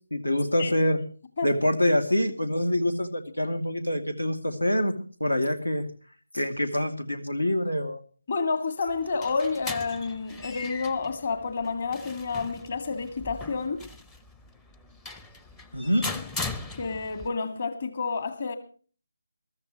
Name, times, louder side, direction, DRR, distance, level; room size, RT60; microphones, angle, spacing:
voice 1, 0.1-1.0 1.4-4.9 5.2-5.9 6.3-8.0 15.7-16.1, left 1 dB, 80° left, 2.7 m, -25 dB
voice 2, 8.3-13.8 16.8-18.6, left 4 dB, 40° left, 2.2 m, -29 dB
sound 1, 8.9-17.3, left 3 dB, 10° left, 0.7 m, -39 dB
22.5 x 13.5 x 3.2 m
figure-of-eight pair, 155°, 0 cm